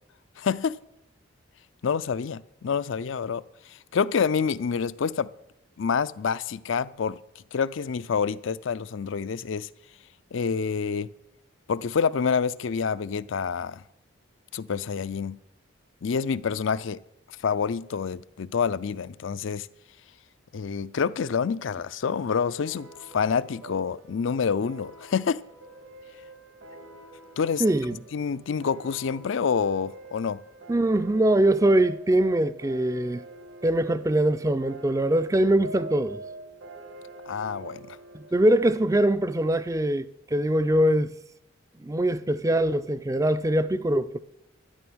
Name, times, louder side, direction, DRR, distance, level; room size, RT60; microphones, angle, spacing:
voice 1, 0.4-0.8 1.8-5.3 5.8-7.2 7.5-9.7 10.3-11.1 11.7-13.8 14.5-15.4 16.0-17.0 17.4-19.7 20.5-25.4 27.4-27.6 28.1-30.4 37.3-38.0, left 6 dB, 70° left, 0.4 m, -27 dB
sound 1, 22.6-39.7, right 2 dB, 75° right, 1.7 m, -46 dB
voice 2, 27.6-28.0 30.7-33.2 33.6-36.2 38.1-41.1 41.8-44.2, right 1 dB, 15° right, 0.4 m, -23 dB
12.5 x 10.0 x 6.2 m
head